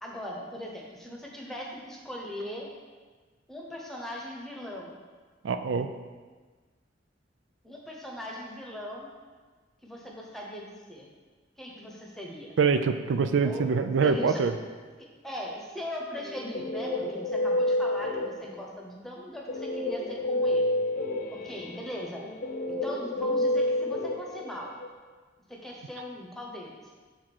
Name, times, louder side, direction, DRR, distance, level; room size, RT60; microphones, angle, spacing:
voice 1, 0.0-2.7 3.5-5.0 7.6-9.1 9.8-11.1 11.6-12.5 13.4-13.8 14.0-14.4 15.2-20.7 21.3-22.2 22.7-24.7 25.5-26.9, left 1 dB, ahead, -2 dB, 1.0 m, -39 dB
voice 2, 5.4-5.9 12.6-14.5, right 5 dB, 85° right, 9 dB, 0.4 m, -24 dB
Guitar, 16.2-18.7 19.5-24.9, left 1 dB, 50° left, 0.7 m, -29 dB
6.3 x 3.7 x 6.1 m, 1.4 s
head